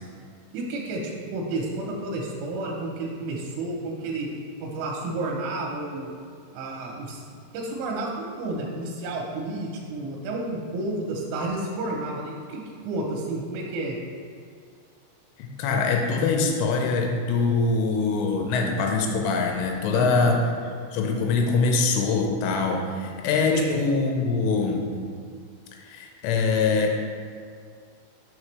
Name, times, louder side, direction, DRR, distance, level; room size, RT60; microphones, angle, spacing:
voice 1, 0.5-4.3 4.6-6.1 6.5-7.2 7.5-14.0 19.9-20.3 23.5-23.8, right 2 dB, 85° right, -1 dB, 3.1 m, -31 dB
voice 2, 15.4-20.4 20.9-25.0 25.7-27.0, left 4 dB, 85° left, 2 dB, 3.1 m, -23 dB
7.3 x 5.8 x 3.2 m, 2.2 s
omnidirectional pair, 5.6 m